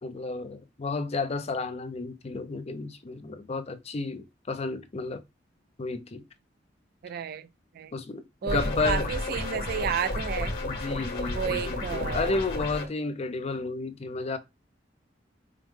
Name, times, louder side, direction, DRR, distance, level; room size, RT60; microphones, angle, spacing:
voice 1, 0.0-5.2 5.8-6.2 7.9-9.1 10.6-14.4, left 3 dB, 35° left, 0.5 m, -32 dB
voice 2, 7.0-7.5 7.7-7.9 8.4-10.5 11.3-12.4, right 7 dB, 55° right, 0.3 m, -32 dB
sound 1, 8.5-12.8, left 2 dB, 55° left, 1.5 m, -32 dB
4.9 x 2.1 x 3.2 m
head